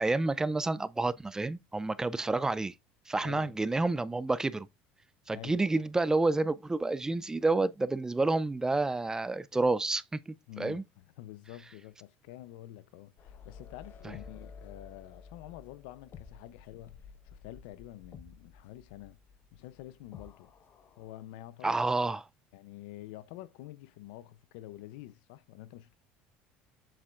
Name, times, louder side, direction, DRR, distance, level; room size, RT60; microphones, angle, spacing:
voice 1, 0.0-2.7 3.1-4.7 5.3-10.8 21.6-22.2, right 2 dB, 10° right, 0.4 m, -29 dB
voice 2, 3.2-3.6 5.3-5.8 10.5-19.2 19.5-20.5 21.0-22.0 22.5-26.0, left 15 dB, 85° left, 0.6 m, -48 dB
sound 1, 13.2-21.2, left 6 dB, 45° left, 1.2 m, -52 dB
7.5 x 6.8 x 2.5 m
supercardioid pair, 105°, 5 cm